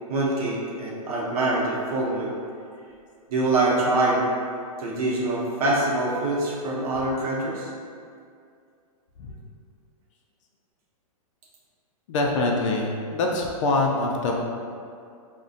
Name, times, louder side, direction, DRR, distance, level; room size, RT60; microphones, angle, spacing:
voice 1, 0.1-2.3 3.3-4.2 4.8-7.7, right 2 dB, 75° right, -4 dB, 0.7 m, -24 dB
voice 2, 12.1-14.4, left 2 dB, 55° left, 0 dB, 0.4 m, -24 dB
2.5 x 2.1 x 2.4 m, 2.3 s
hypercardioid pair, 145°, 19 cm